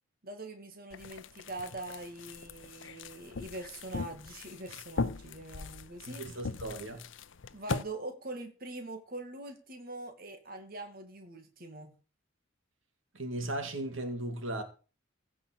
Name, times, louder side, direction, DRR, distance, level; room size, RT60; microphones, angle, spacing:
voice 1, 0.2-6.2 7.5-11.9, right 2 dB, 45° right, 2.4 m, -43 dB
sound 1, 0.9-7.8, left 4 dB, 65° left, 0.7 m, -39 dB
voice 2, 6.1-7.0 13.1-14.6, right 1 dB, 70° right, 2.3 m, -36 dB
16.5 x 6.1 x 7.4 m
head